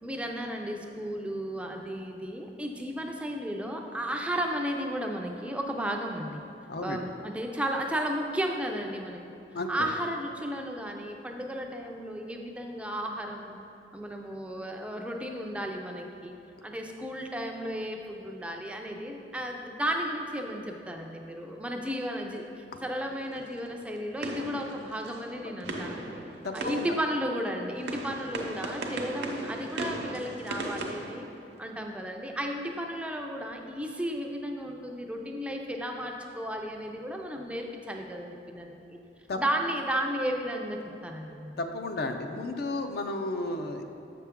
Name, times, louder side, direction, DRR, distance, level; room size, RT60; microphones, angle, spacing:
voice 1, 0.0-6.4 6.8-9.2 9.7-13.6 13.9-16.3 16.6-26.2 26.5-31.3 31.6-39.0 39.4-41.5, equal, 5° right, 2 dB, 0.4 m, -34 dB
voice 2, 6.7-7.0 9.5-9.7 26.4-26.9 39.3-39.4 41.6-43.8, left 2 dB, 60° left, 5 dB, 0.5 m, -32 dB
sound 1, 22.8-31.9, right 2 dB, 65° right, 0.7 m, -38 dB
7.4 x 5.8 x 3.6 m, 2.8 s
head